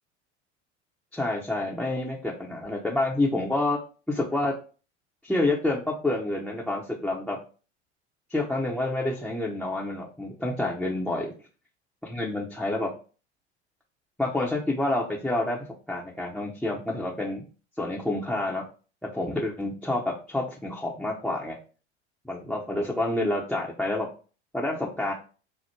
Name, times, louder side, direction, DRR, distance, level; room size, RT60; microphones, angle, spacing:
voice 1, 1.1-3.8 4.1-4.5 5.2-7.4 8.3-11.3 12.0-12.9 14.2-17.4 17.8-18.6 19.0-21.6 22.2-24.1 24.5-25.1, left 2 dB, ahead, -1 dB, 0.6 m, -28 dB
4.4 x 2.0 x 4.4 m, 0.36 s
hypercardioid pair, 85°, 35 cm